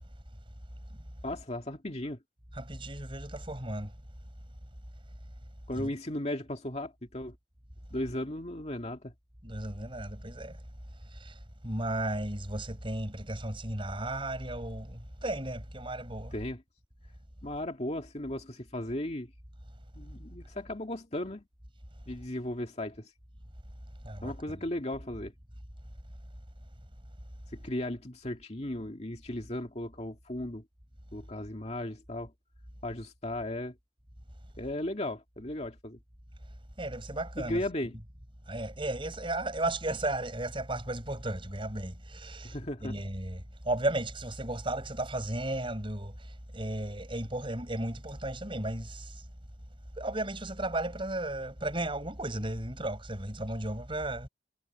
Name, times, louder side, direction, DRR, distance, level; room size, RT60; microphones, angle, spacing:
voice 1, 1.2-2.2 5.7-7.3 7.9-9.1 16.3-16.6 17.4-19.3 19.9-21.4 22.1-23.1 24.2-25.3 27.5-30.6 31.1-32.3 32.8-33.7 34.6-36.0 37.4-37.9 42.4-42.9, left 1 dB, 35° left, 2.3 m, -36 dB
voice 2, 2.5-3.9 5.7-5.9 9.4-10.6 11.2-11.3 11.6-16.3 24.0-24.4 36.8-37.6 38.5-46.1 46.5-49.1 50.0-54.3, right 1 dB, 30° right, 7.1 m, -34 dB
head